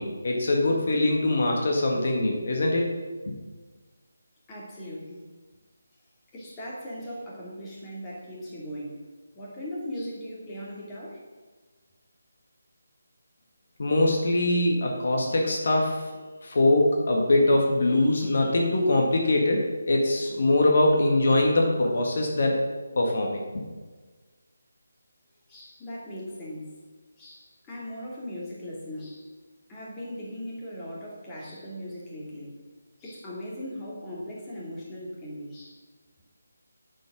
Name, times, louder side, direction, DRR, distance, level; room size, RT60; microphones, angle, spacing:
voice 1, 0.0-2.9 3.3-3.4 13.8-16.1 16.4-22.7 23.0-23.6, left 2 dB, 55° left, 0 dB, 1.9 m, -23 dB
voice 2, 4.5-5.2 6.3-9.0 9.3-11.2 25.5-26.8 27.2-29.3 29.7-32.5 33.0-35.8, equal, 15° left, -6 dB, 2.6 m, -38 dB
8.9 x 7.7 x 6.2 m, 1.4 s
figure-of-eight pair, 160°, 0 cm